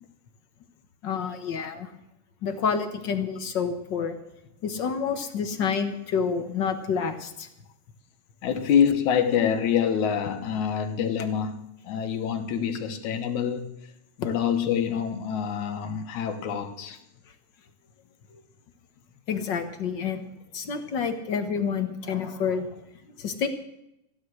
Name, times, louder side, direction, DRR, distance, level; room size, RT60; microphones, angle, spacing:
voice 1, 1.0-1.9 2.4-4.2 4.6-7.5 19.3-20.3 20.5-23.5, left 6 dB, 55° left, 1.3 m, -28 dB
voice 2, 8.4-11.6 11.8-13.7 14.2-17.0 18.3-18.4, left 8 dB, 75° left, 2.7 m, -26 dB
15.5 x 11.0 x 6.3 m
omnidirectional pair, 3.4 m